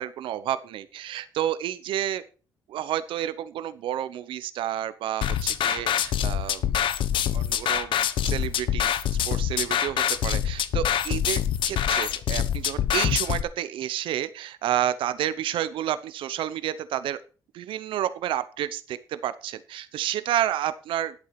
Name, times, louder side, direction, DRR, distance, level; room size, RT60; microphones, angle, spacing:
voice 1, 0.0-2.2 2.7-6.7 7.3-8.0 8.2-8.9 9.3-17.2 17.5-21.1, right 11 dB, 85° right, 13 dB, 0.9 m, -30 dB
sound 1, 5.2-13.4, left 9 dB, 75° left, 1.0 m, -25 dB
11.5 x 8.2 x 5.9 m, 0.37 s
cardioid pair, 100°, 9 cm